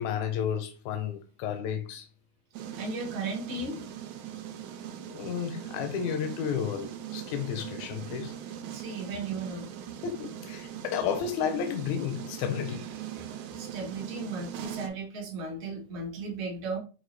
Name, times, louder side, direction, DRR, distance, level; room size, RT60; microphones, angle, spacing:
voice 1, 0.0-2.1 3.7-3.8 5.1-8.3 10.0-12.9, left 8 dB, 85° left, 1.9 m, -32 dB
sound 1, 2.5-14.9, right 10 dB, 90° right, 2.0 m, -41 dB
voice 2, 2.8-3.8 8.7-9.7 13.1-13.3 13.5-16.8, right 3 dB, 65° right, 0.6 m, -36 dB
6.2 x 2.4 x 3.1 m
omnidirectional pair, 3.3 m